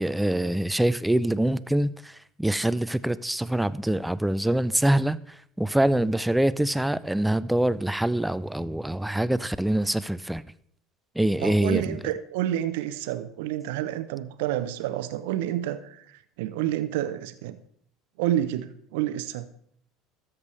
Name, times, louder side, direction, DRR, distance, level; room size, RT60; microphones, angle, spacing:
voice 1, 0.0-10.4 11.2-12.0, right 1 dB, 5° right, 0.4 m, -25 dB
voice 2, 11.4-17.6 18.2-19.5, right 12 dB, 70° right, 0.6 m, -29 dB
13.0 x 6.7 x 3.2 m
hypercardioid pair, 75°, 0 cm